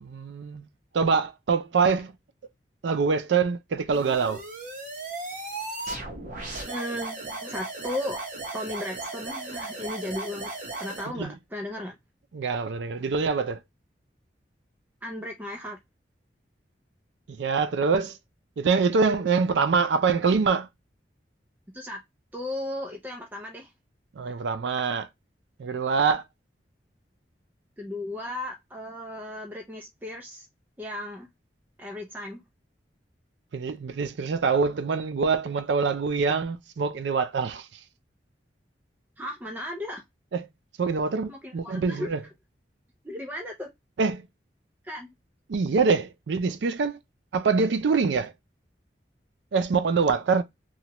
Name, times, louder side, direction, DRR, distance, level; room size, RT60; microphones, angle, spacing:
voice 1, 0.0-0.7 0.9-2.1 2.8-4.4 11.1-11.3 12.3-13.6 17.3-18.2 18.6-20.7 24.2-25.1 25.6-26.2 33.5-37.7 40.3-40.5 40.8-42.2 44.0-44.3 45.5-47.0 47.3-48.3 49.5-50.4, right 5 dB, 80° right, 0.4 m, -25 dB
sound 1, 3.9-11.1, right 2 dB, 45° right, 0.8 m, -36 dB
voice 2, 6.7-8.2 8.5-10.5 10.8-12.0 15.0-15.8 21.7-22.0 22.3-23.7 27.8-30.5 30.8-31.3 31.8-32.4 39.2-40.0 41.3-42.1 43.0-43.7 44.8-45.1, left 1 dB, 10° right, 0.5 m, -35 dB
3.0 x 2.2 x 2.8 m
head